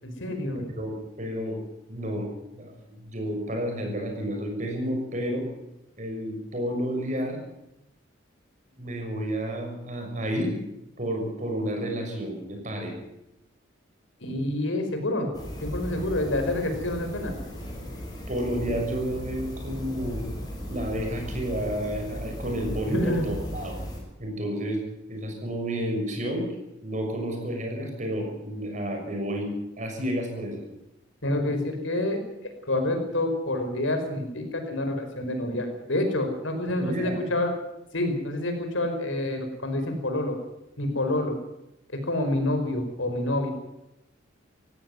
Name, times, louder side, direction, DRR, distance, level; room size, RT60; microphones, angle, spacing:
voice 1, 0.0-0.7 14.2-15.3 15.6-17.3 22.8-23.3 31.2-32.2 32.7-37.5 37.9-40.3 40.8-41.3 41.9-43.5, left 1 dB, 80° left, 5 dB, 5.1 m, -27 dB
voice 2, 0.7-1.6 1.9-2.7 3.0-5.5 6.0-7.4 8.8-10.5 11.0-12.9 18.3-20.2 20.7-23.8 24.2-24.8 25.1-26.5 26.8-29.5 29.8-30.6 36.7-37.2, equal, 40° right, 2 dB, 6.4 m, -30 dB
sound 1, 15.3-24.0, equal, 20° left, 6.7 m, -36 dB
18.0 x 16.5 x 9.7 m, 0.88 s
head